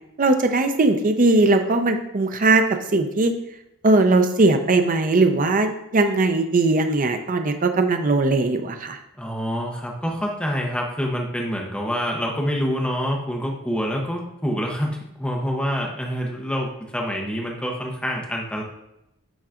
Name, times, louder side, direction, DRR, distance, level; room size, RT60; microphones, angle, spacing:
voice 1, 0.2-3.3 3.8-9.0, right 2 dB, 35° right, 6 dB, 0.5 m, -19 dB
voice 2, 9.2-18.6, equal, 5° left, -1 dB, 0.8 m, -26 dB
10.0 x 3.9 x 2.4 m, 0.85 s
head